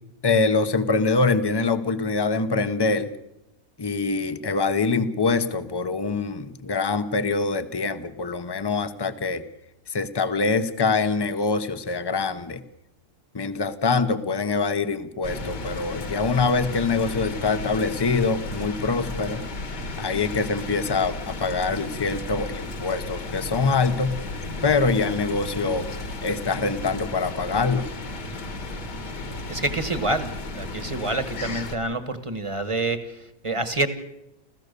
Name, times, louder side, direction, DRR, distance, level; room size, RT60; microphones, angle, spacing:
voice 1, 0.2-3.1 3.8-9.4 9.9-12.6 13.3-19.4 20.0-24.2 24.6-25.9 26.2-27.9, left 4 dB, 20° left, 12 dB, 0.6 m, -24 dB
sound 1, 15.2-31.8, left 2 dB, 65° left, 2.5 m, -34 dB
voice 2, 29.5-33.9, right 2 dB, 20° right, 11 dB, 1.3 m, -27 dB
29.0 x 15.0 x 6.8 m, 0.89 s
omnidirectional pair, 1.9 m